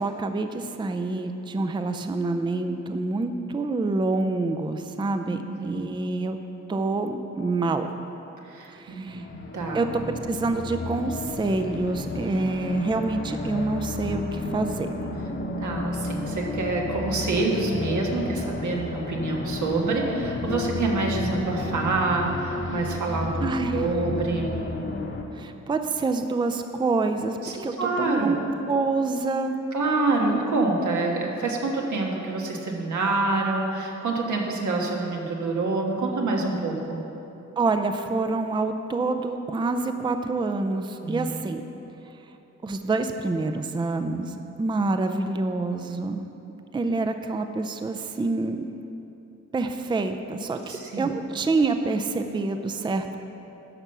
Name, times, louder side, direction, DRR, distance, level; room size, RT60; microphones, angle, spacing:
voice 1, 0.0-6.4 6.7-7.9 8.7-9.2 9.7-14.9 23.4-23.9 25.3-28.4 28.7-29.6 37.6-41.6 42.6-46.3 46.7-48.6 49.5-53.2, right 3 dB, 15° right, 7 dB, 0.4 m, -27 dB
voice 2, 5.5-5.8 8.5-9.2 9.5-9.8 15.6-23.4 23.7-24.5 27.4-28.3 29.7-37.0 41.0-41.3 50.7-51.1, right 3 dB, 85° right, -1 dB, 1.4 m, -26 dB
sound 1, 9.1-25.2, left 2 dB, 40° left, 1.0 m, -32 dB
11.0 x 5.7 x 6.7 m, 3.0 s
wide cardioid pair, 130°, 29 cm